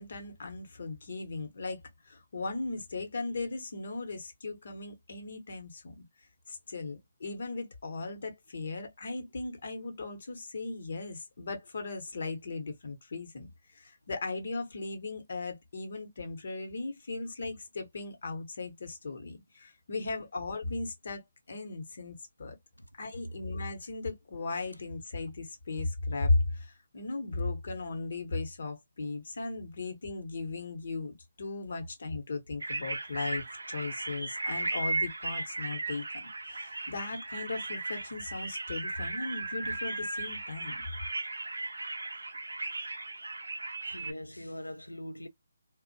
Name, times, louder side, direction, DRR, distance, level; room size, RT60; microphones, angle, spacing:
voice 1, 0.0-1.8 2.1-6.0 6.5-22.6 23.0-36.0 36.5-40.8, left 3 dB, 55° left, 0.8 m, -37 dB
sound 1, 32.6-44.1, right 2 dB, 75° right, 0.4 m, -36 dB
voice 2, 43.8-45.3, left 1 dB, 90° left, 0.4 m, -42 dB
2.5 x 2.1 x 2.5 m
figure-of-eight pair, 145°, 0 cm